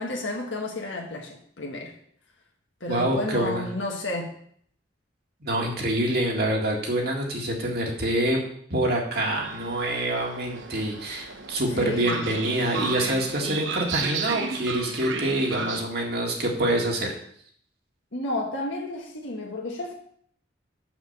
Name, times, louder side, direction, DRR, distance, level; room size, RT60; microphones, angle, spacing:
voice 1, 0.0-1.9 2.8-4.3 11.7-12.2 18.1-20.0, left 2 dB, 75° left, 0 dB, 1.5 m, -32 dB
voice 2, 2.9-3.6 5.4-8.4 8.7-17.1, right 1 dB, 50° right, -1 dB, 2.0 m, -26 dB
Train, 9.4-15.8, right 4 dB, 80° right, 0.9 m, -33 dB
6.8 x 6.0 x 7.1 m, 0.62 s
head